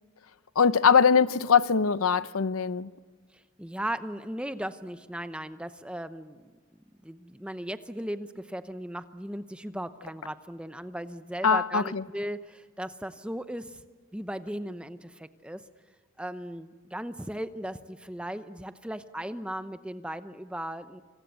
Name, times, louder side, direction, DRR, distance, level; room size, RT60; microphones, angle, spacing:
voice 1, 0.6-2.9 11.4-12.0, left 6 dB, 85° left, 0.7 m, -22 dB
voice 2, 3.3-6.5 7.0-13.8 14.1-15.6 16.2-21.0, right 1 dB, 5° right, 0.8 m, -37 dB
27.0 x 25.5 x 8.2 m
head